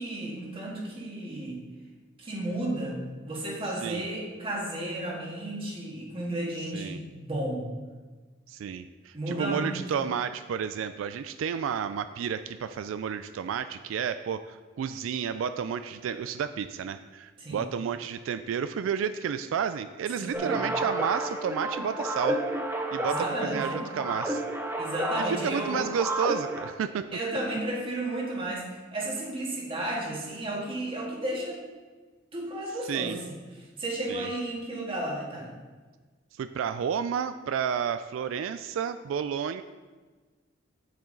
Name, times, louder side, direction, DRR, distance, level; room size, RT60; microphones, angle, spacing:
voice 1, 0.0-1.6 2.2-3.0 3.2-7.7 9.1-9.8 17.4-17.6 20.2-20.6 23.1-23.6 24.8-25.9 27.1-31.6 32.3-33.4 33.8-35.5, right 1 dB, 30° right, -2 dB, 1.7 m, -33 dB
voice 2, 8.5-22.4 22.9-24.4 25.2-27.0 32.9-33.2 34.1-34.3 36.3-39.6, right 7 dB, 85° right, 12 dB, 0.3 m, -31 dB
sound 1, 20.3-26.7, right 1 dB, 10° right, 0.6 m, -31 dB
7.6 x 7.2 x 3.9 m, 1.3 s
head